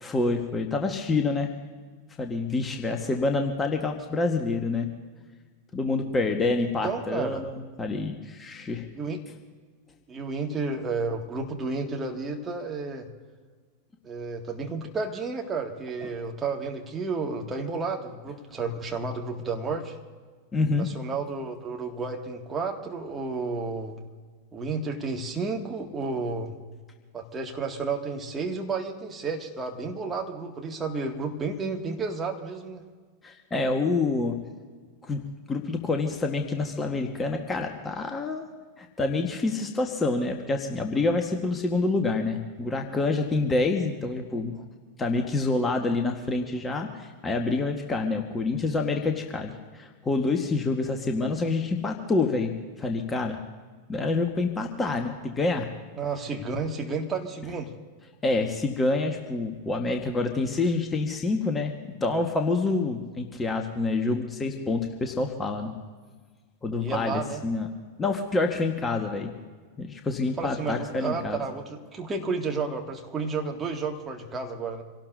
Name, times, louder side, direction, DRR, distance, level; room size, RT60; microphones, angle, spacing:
voice 1, 0.0-1.5 2.2-4.9 5.7-8.9 16.0-16.1 20.5-20.9 33.2-34.4 35.0-35.2 35.5-38.4 38.8-44.5 45.0-53.4 53.9-55.7 58.2-61.7 62.0-65.7 66.6-67.7 68.0-69.3 69.8-71.4, left 3 dB, 15° left, 4 dB, 1.4 m, -27 dB
voice 2, 6.6-7.4 8.9-9.2 10.1-13.1 14.0-20.0 20.7-24.0 24.5-26.6 27.1-32.8 56.0-57.7 66.8-67.4 70.4-74.8, right 4 dB, 20° right, 1 dB, 2.1 m, -32 dB
27.0 x 18.0 x 2.7 m, 1.5 s
figure-of-eight pair, 90°, 0 cm